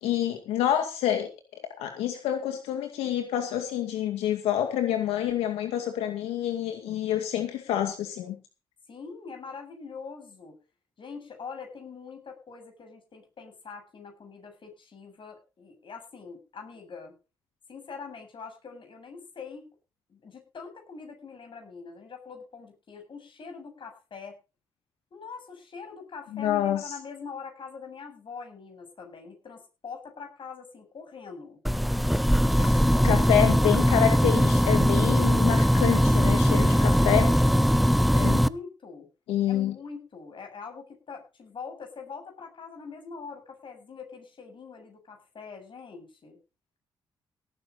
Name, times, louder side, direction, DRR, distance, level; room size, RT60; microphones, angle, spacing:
voice 1, 0.0-1.3 1.8-8.4 26.3-26.9 33.0-37.5 38.1-38.4 39.3-39.7, left 11 dB, 85° left, 5 dB, 2.2 m, -27 dB
voice 2, 8.9-10.6 11.0-17.1 17.7-19.7 20.1-24.4 25.1-31.6 32.5-33.5 38.3-39.1 39.4-46.4, left 5 dB, 55° left, 4 dB, 7.8 m, -43 dB
sound 1, 31.6-38.5, equal, ahead, 0.9 m, -21 dB
18.0 x 10.5 x 4.1 m, 0.31 s
supercardioid pair, 50°, 10 cm